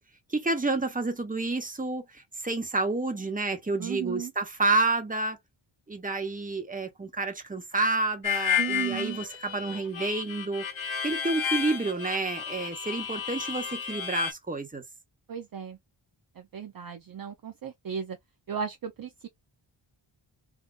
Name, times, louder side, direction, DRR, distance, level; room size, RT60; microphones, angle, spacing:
voice 1, 0.3-5.4 5.9-10.6 11.0-14.8, right 2 dB, 15° right, 1.1 m, -29 dB
voice 2, 3.8-4.3 8.6-9.2 15.3-15.8 16.4-18.2 18.5-19.3, right 8 dB, 45° right, 0.6 m, -35 dB
Harmonica, 8.2-14.3, left 8 dB, 65° left, 1.0 m, -32 dB
3.7 x 2.8 x 2.4 m
wide cardioid pair, 90°, 49 cm